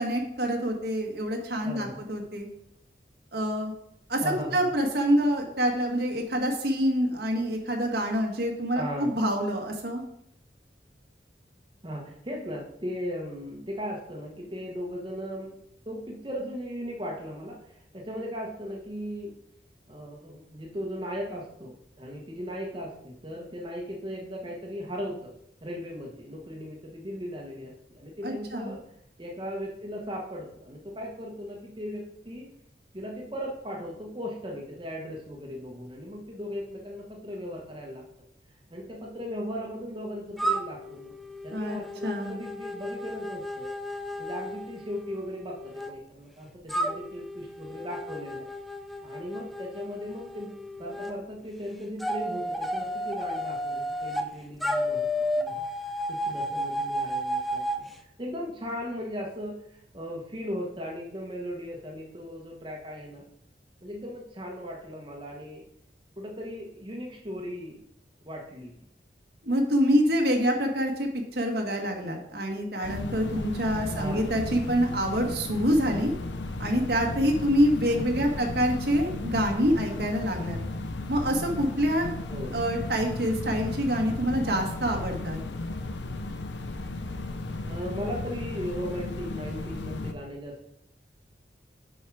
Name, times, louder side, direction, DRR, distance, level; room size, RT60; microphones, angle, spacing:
voice 1, 0.0-2.5 3.3-3.7 4.1-10.0 28.2-28.7 41.5-41.8 42.0-42.4 69.4-76.1 76.6-80.6 81.1-82.1 82.5-85.4, equal, 65° right, 2 dB, 1.5 m, -26 dB
voice 2, 1.6-2.0 4.2-4.7 8.7-9.1 11.8-15.5 15.9-19.3 19.9-25.3 25.6-28.8 29.2-32.5 32.9-38.0 38.7-41.1 41.4-43.7 44.2-48.5 49.0-55.0 55.4-55.6 56.1-63.2 63.8-65.6 66.2-67.8 68.3-68.7 73.9-74.3 77.9-78.2 82.3-82.7 87.7-90.7, equal, 30° right, -1 dB, 1.2 m, -37 dB
sound 1, 40.4-45.9 46.7-51.1 52.0-54.3 54.6-57.8, equal, ahead, 0.4 m, -33 dB
sound 2, 72.8-90.1, left 2 dB, 90° left, 0.8 m, -35 dB
7.2 x 5.5 x 4.8 m, 0.75 s
head